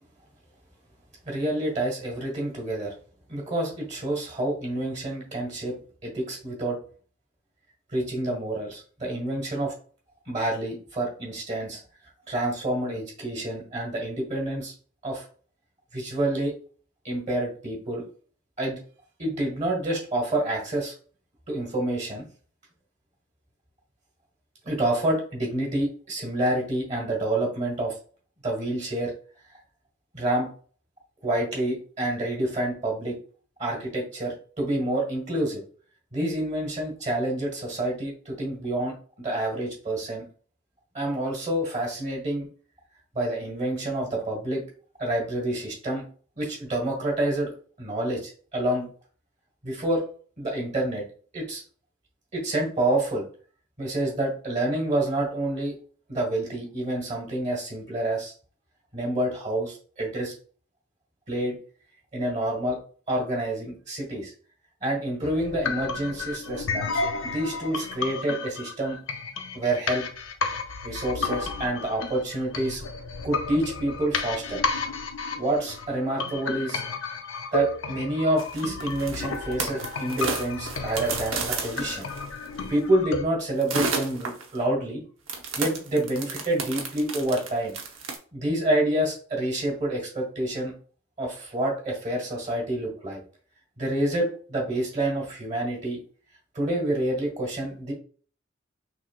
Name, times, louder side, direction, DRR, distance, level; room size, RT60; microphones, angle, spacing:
voice 1, 1.2-2.9 3.3-5.7 6.0-6.8 7.9-9.7 10.3-11.8 12.3-14.7 15.0-15.2 15.9-16.5 17.0-18.0 18.6-18.8 19.2-20.9 21.5-22.2 24.6-27.9 28.4-29.1 30.1-30.5 31.2-33.1 33.6-35.6 36.1-40.2 40.9-42.5 43.1-44.6 45.0-46.0 46.4-48.9 49.6-50.0 50.4-51.0 51.3-51.6 52.3-53.3 53.8-55.7 56.1-58.3 58.9-60.3 61.3-61.6 62.1-62.8 63.1-64.3 64.8-69.0 69.5-70.0 70.8-72.8 73.2-74.6 75.4-76.8 77.5-82.1 82.7-85.0 85.6-87.7 88.3-90.7 91.2-93.2 93.8-96.0 96.5-97.9, right 1 dB, 35° right, -2 dB, 1.6 m, -28 dB
sound 1, 65.2-83.2, left 4 dB, 70° left, 0.6 m, -32 dB
sound 2, 78.4-82.5 83.6-84.6 85.3-88.2, right 4 dB, 85° right, 0.9 m, -32 dB
5.9 x 2.8 x 2.4 m, 0.42 s
head